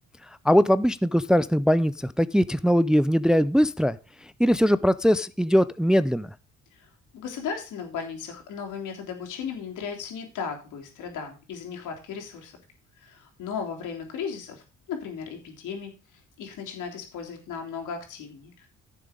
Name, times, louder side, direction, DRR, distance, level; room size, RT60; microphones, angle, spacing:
voice 1, 0.4-6.3, equal, ahead, 16 dB, 0.5 m, -21 dB
voice 2, 6.7-12.5 13.0-18.7, left 6 dB, 85° left, 2 dB, 3.4 m, -36 dB
11.0 x 7.0 x 5.1 m, 0.33 s
cardioid pair, 90°, 30 cm